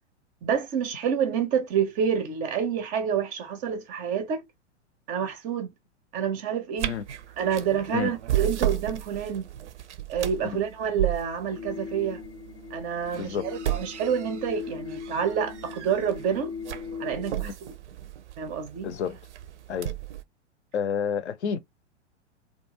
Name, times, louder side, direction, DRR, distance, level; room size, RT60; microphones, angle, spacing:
voice 1, 0.4-4.4 5.1-5.7 6.1-6.9 7.4-9.5 10.1-12.2 12.7-16.5 17.0-17.7 18.4-18.9, right 7 dB, 25° right, 0.5 m, -28 dB
sound 1, 6.8-20.2, right 13 dB, 70° right, 0.5 m, -34 dB
sound 2, 11.5-17.3, left 6 dB, 25° left, 0.6 m, -40 dB
voice 2, 13.1-13.5 17.4-17.6 18.8-19.2 19.7-19.9 20.7-21.6, left 7 dB, 65° left, 0.6 m, -29 dB
2.3 x 2.2 x 2.9 m
figure-of-eight pair, 100°, 36 cm